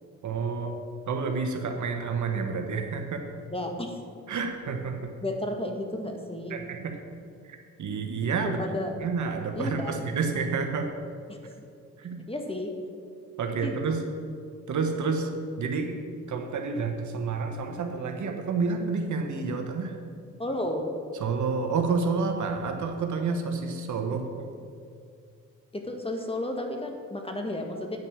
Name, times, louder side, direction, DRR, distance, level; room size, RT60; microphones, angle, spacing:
voice 1, 0.2-0.8 1.1-3.2 4.3-5.1 6.5-6.9 7.5-8.6 9.0-10.9 12.0-12.2 13.4-14.0 14.7-15.3 15.6-16.0 16.3-19.9 21.2-24.5, right 4 dB, 65° right, 4 dB, 1.2 m, -29 dB
voice 2, 3.5-4.0 5.2-6.6 8.4-8.9 9.5-10.1 11.3-11.5 12.3-12.7 13.6-14.1 20.4-20.9 25.7-28.0, left 1 dB, 15° left, 3 dB, 1.6 m, -33 dB
9.2 x 5.4 x 7.0 m, 2.3 s
supercardioid pair, 55°, 32 cm